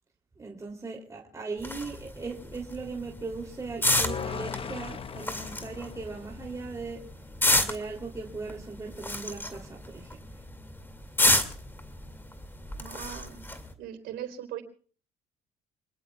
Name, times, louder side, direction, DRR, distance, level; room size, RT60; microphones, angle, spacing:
voice 1, 0.4-7.0 7.6-10.2, right 4 dB, 20° right, 0 dB, 3.0 m, -38 dB
sound 1, 1.6-13.7, left 1 dB, 10° left, 2.3 m, -31 dB
sound 2, 3.8-7.0, left 7 dB, 35° left, 0.9 m, -38 dB
voice 2, 12.7-13.4 13.8-14.6, right 11 dB, 80° right, 6 dB, 3.9 m, -39 dB
27.5 x 20.5 x 2.3 m, 0.41 s
cardioid pair, 110°, 17 cm